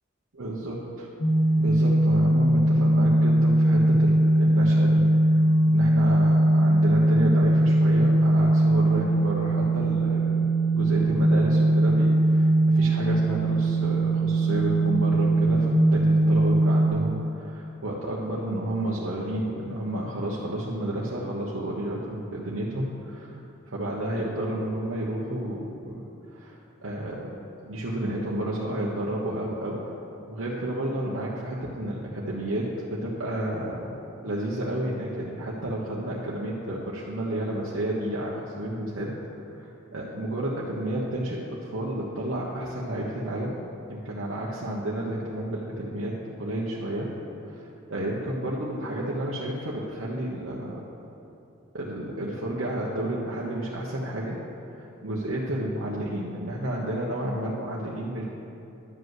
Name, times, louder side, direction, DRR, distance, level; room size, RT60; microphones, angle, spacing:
voice 1, 0.4-1.1 1.6-10.5 10.7-23.4 23.7-26.0 26.3-27.3 27.6-29.8 30.3-33.9 34.2-39.1 39.6-43.6 43.9-47.1 47.5-50.8 51.7-54.4 54.8-58.3, right 1 dB, 80° right, -5 dB, 1.2 m, -31 dB
sound 1, 1.2-16.9, right 1 dB, 85° left, 1.9 m, -20 dB
11.0 x 5.4 x 7.7 m, 2.9 s
head